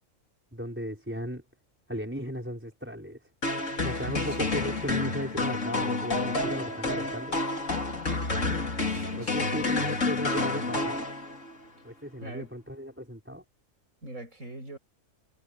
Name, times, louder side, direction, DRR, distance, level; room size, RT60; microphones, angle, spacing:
voice 1, 0.5-1.4 1.9-3.3 3.8-7.4 9.1-11.1 11.8-13.4, equal, 10° right, 5.6 m, -36 dB
sound 1, 3.4-11.6, left 3 dB, 70° left, 3.9 m, -29 dB
voice 2, 4.0-4.4 8.8-9.8 12.2-12.5 14.0-14.8, right 1 dB, 85° right, 7.6 m, -42 dB
omnidirectional pair, 1.3 m